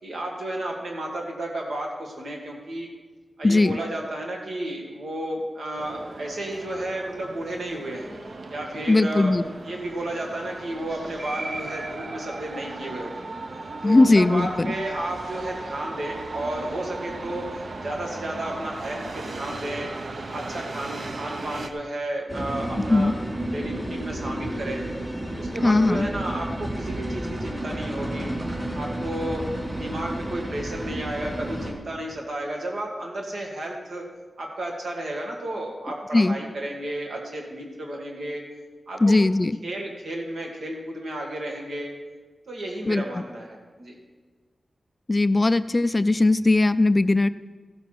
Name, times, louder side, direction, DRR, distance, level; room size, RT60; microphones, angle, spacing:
voice 1, 0.0-2.9 3.4-8.1 8.5-9.3 9.7-13.1 13.8-17.5 17.8-19.9 20.3-23.1 23.5-24.8 25.4-28.3 28.7-29.4 29.7-34.1 34.4-38.4 38.9-39.1 39.6-41.9 42.5-44.0, right 1 dB, 75° right, 0 dB, 1.9 m, -32 dB
voice 2, 3.4-3.8 8.9-9.4 13.8-14.7 22.9-23.1 25.6-26.1 36.1-36.4 39.0-39.5 42.9-43.0 45.1-47.3, left 2 dB, 25° left, 14 dB, 0.3 m, -19 dB
sound 1, 5.8-21.7, right 2 dB, 55° right, 0.9 m, -37 dB
sound 2, 22.3-31.7, right 1 dB, 20° right, 2.7 m, -31 dB
14.5 x 7.2 x 6.0 m, 1.4 s
wide cardioid pair, 125°, 0 cm